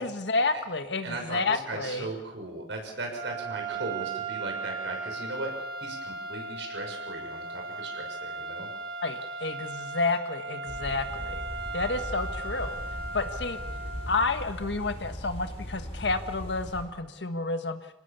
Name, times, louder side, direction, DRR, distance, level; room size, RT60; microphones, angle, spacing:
voice 1, 0.0-2.1 9.0-11.4 11.7-12.8 13.1-13.6 14.1-17.8, left 3 dB, 75° left, 9 dB, 1.6 m, -30 dB
voice 2, 1.0-5.5 5.8-8.7, right 2 dB, 80° right, 2 dB, 6.6 m, -37 dB
sound 1, 3.1-14.6, right 3 dB, 55° right, 5.6 m, -37 dB
sound 2, 10.7-16.8, equal, 35° left, 6.4 m, -38 dB
26.5 x 19.0 x 7.0 m, 0.93 s
head